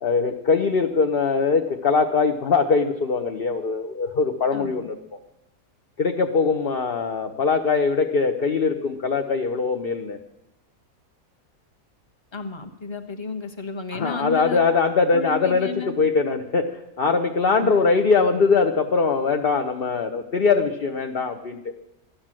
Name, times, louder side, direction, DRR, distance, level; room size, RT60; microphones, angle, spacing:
voice 1, 0.0-5.0 6.0-10.2 13.9-21.6, left 4 dB, 45° left, 4 dB, 1.0 m, -22 dB
voice 2, 4.5-4.9 12.3-14.6 15.1-16.0 17.5-17.7, left 4 dB, 20° left, 5 dB, 1.2 m, -32 dB
14.5 x 11.5 x 7.5 m, 0.87 s
omnidirectional pair, 1.5 m